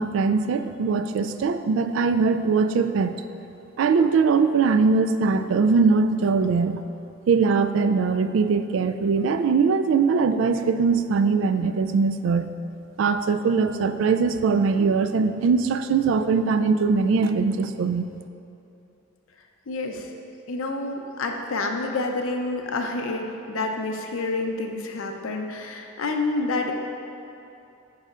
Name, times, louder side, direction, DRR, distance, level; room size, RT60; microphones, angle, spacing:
voice 1, 0.0-3.2 3.8-6.8 7.3-12.5 13.0-18.0, right 5 dB, 70° right, 10 dB, 0.3 m, -21 dB
voice 2, 19.7-20.1 20.5-26.7, left 3 dB, 85° left, 3 dB, 0.6 m, -28 dB
10.5 x 5.5 x 2.5 m, 2.9 s
head